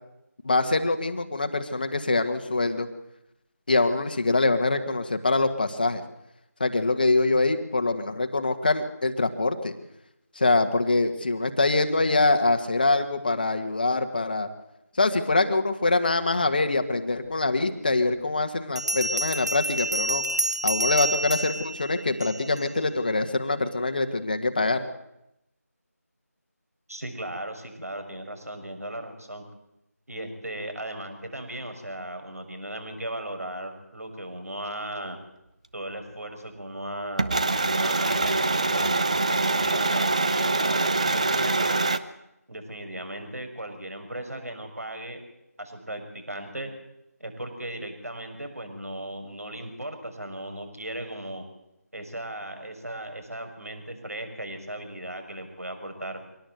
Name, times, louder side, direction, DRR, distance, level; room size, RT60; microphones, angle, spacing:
voice 1, 0.4-2.9 3.7-6.0 6.6-9.7 10.3-14.5 15.0-20.2 20.6-24.8, left 3 dB, 30° left, 7 dB, 1.7 m, -24 dB
Bell, 17.5-17.6 18.8-22.6, right 2 dB, 85° right, 1.5 m, -29 dB
voice 2, 26.9-29.4 30.1-35.2 35.7-39.1 39.5-41.8 42.5-45.2 45.6-46.7 47.2-51.4 51.9-56.2, right 1 dB, 60° right, 6 dB, 6.5 m, -37 dB
sound 1, 37.2-42.0, right 3 dB, 25° right, 0.7 m, -24 dB
24.5 x 18.0 x 8.0 m, 0.86 s
figure-of-eight pair, 170°, 9 cm